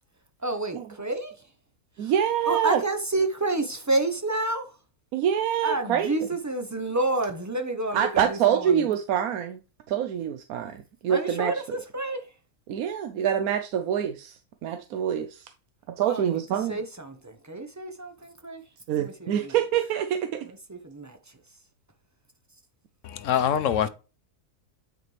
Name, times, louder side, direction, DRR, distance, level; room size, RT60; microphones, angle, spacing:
voice 1, 0.4-1.3 2.0-2.1 2.5-4.7 5.6-8.8 11.1-12.3 16.0-16.4 16.7-18.6 18.9-19.5 20.5-21.2, right 2 dB, 25° right, 0.4 m, -29 dB
voice 2, 2.0-2.8 5.1-6.2 7.9-9.6 9.9-11.5 12.7-15.5 15.9-16.8 18.9-20.5, right 9 dB, 70° right, 1.0 m, -26 dB
voice 3, 23.0-23.9, left 9 dB, 65° left, 0.9 m, -24 dB
9.2 x 5.1 x 3.2 m
omnidirectional pair, 1.6 m